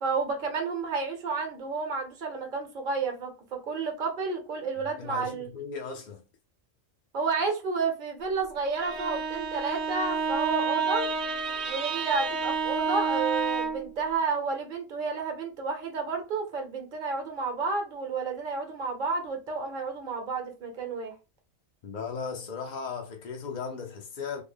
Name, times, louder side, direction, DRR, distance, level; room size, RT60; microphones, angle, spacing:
voice 1, 0.0-5.5 7.1-11.1 11.6-21.1, right 4 dB, 50° right, 1.0 m, -31 dB
voice 2, 4.8-6.2 21.8-24.4, left 5 dB, 50° left, 0.6 m, -37 dB
Bowed string instrument, 8.6-13.9, right 5 dB, 80° right, 1.0 m, -29 dB
3.4 x 2.1 x 3.4 m
omnidirectional pair, 1.1 m